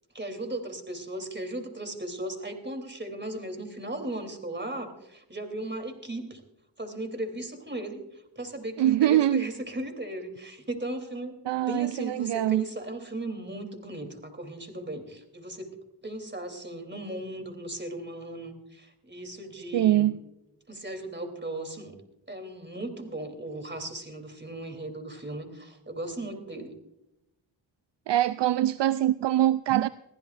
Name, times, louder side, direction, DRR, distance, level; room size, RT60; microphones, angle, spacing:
voice 1, 0.1-6.4 6.8-8.0 8.3-15.7 16.0-20.1 20.7-21.9 22.3-26.7, right 1 dB, 25° right, 3.3 m, -37 dB
voice 2, 8.8-9.5 11.5-12.6 19.7-20.2 28.1-29.9, right 13 dB, 65° right, 0.5 m, -23 dB
21.5 x 15.5 x 2.6 m
cardioid pair, 45°, 46 cm